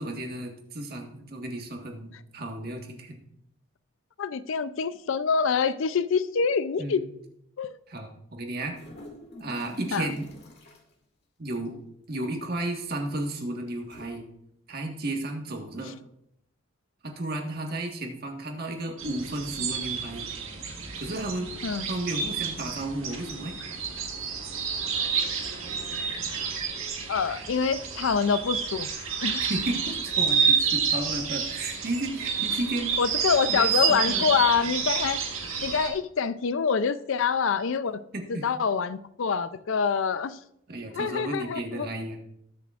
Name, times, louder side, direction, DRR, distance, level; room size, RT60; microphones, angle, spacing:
voice 1, 0.0-3.2 6.8-7.0 7.9-8.7 9.4-10.3 11.4-11.8 12.1-14.2 14.7-15.9 17.0-20.3 21.0-21.5 21.9-23.6 29.4-33.0 33.5-34.3 38.1-38.5 40.7-42.2, right 1 dB, 45° right, 1.5 m, -33 dB
voice 2, 4.2-7.0 7.6-7.8 9.9-10.1 21.6-21.9 27.1-28.9 29.2-29.4 33.0-35.2 35.6-38.0 38.3-40.4 40.9-41.9, left 6 dB, 65° left, 0.4 m, -26 dB
sound 1, 8.6-10.9 12.2-12.6 13.8-14.1, left 1 dB, 50° left, 2.2 m, -46 dB
sound 2, 19.0-35.9, right 6 dB, 70° right, 1.7 m, -29 dB
20.0 x 6.9 x 2.5 m
head